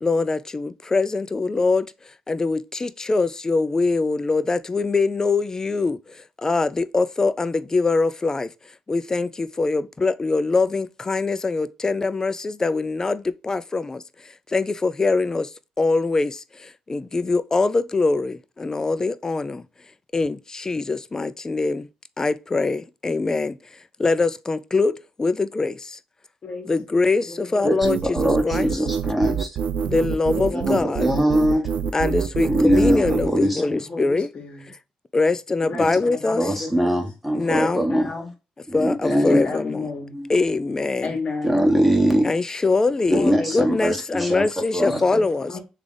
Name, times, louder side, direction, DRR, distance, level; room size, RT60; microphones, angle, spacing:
voice 1, 0.0-19.6 20.1-21.9 22.2-26.0 26.6-28.2 28.4-28.7 29.8-31.2 31.9-34.3 35.1-36.5 37.3-37.9 38.7-39.9 40.3-41.1 42.2-45.5, left 3 dB, 25° left, 0.3 m, -23 dB
voice 2, 27.3-28.0 28.2-28.3 30.4-31.0 32.8-34.7 35.6-37.0 37.9-38.3 39.1-40.1 41.0-41.6 43.1-43.6 44.9-45.6, left 3 dB, 50° left, 1.3 m, -33 dB
sound 1, 27.8-33.3, right 7 dB, 70° right, 0.3 m, -26 dB
voice 3, 28.0-29.5 30.5-31.9 32.5-33.8 35.7-35.8 36.4-38.1 38.7-39.4 40.1-40.3 41.4-42.3 43.1-44.5 44.7-45.0, equal, ahead, 1.2 m, -21 dB
3.3 x 2.4 x 3.8 m
cardioid pair, 80°, 2 cm